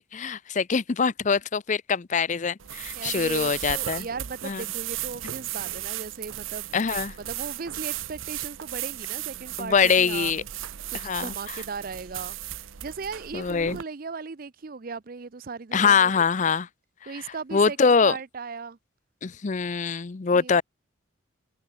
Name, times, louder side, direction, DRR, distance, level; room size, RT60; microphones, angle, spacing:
voice 1, 0.0-4.1 4.4-4.6 6.7-7.1 9.6-10.4 11.0-11.3 13.3-13.8 15.7-16.7 17.5-18.1 19.2-20.6, left 5 dB, 40° left, 0.5 m, -23 dB
sound 1, 2.6-13.8, right 13 dB, 85° right, 0.7 m, -35 dB
voice 2, 2.9-6.7 7.2-10.5 10.9-12.4 12.8-16.5 17.1-18.8 20.3-20.6, right 4 dB, 45° right, 0.6 m, -37 dB
head